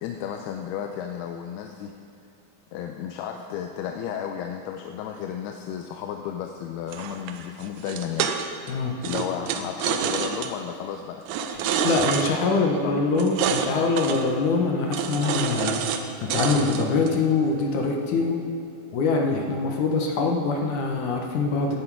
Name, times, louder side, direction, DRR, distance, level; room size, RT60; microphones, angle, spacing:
voice 1, 0.0-1.9 2.7-8.3 9.0-11.3 12.5-13.0, left 8 dB, 90° left, 4 dB, 2.6 m, -33 dB
sound 1, 6.9-8.7 9.0-10.5 11.3-12.3 13.2-13.7 14.0-14.3 14.9-16.0 16.3-17.2, right 7 dB, 80° right, 2.7 m, -27 dB
voice 2, 11.8-15.8 16.2-18.4 18.9-21.8, left 4 dB, 65° left, 1 dB, 2.2 m, -24 dB
16.0 x 9.9 x 4.7 m, 2.7 s
omnidirectional pair, 4.5 m